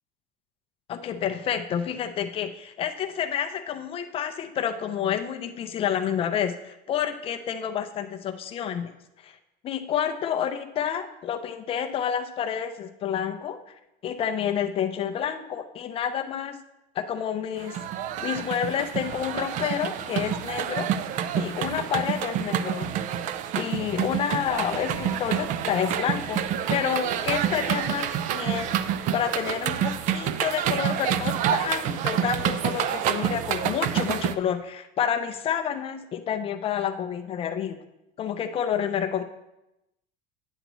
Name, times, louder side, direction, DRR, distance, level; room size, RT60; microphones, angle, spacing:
voice 1, 0.9-8.9 9.2-9.4 9.6-13.6 14.0-16.6 17.0-17.8 18.2-20.9 21.4-22.9 23.5-26.4 26.7-28.7 29.1-37.8 38.2-39.2, left 8 dB, 30° left, 7 dB, 0.5 m, -29 dB
sound 1, 17.6-34.3, right 9 dB, 45° right, 0.4 m, -28 dB
8.9 x 8.0 x 3.0 m, 0.89 s
cardioid pair, 165°, 19 cm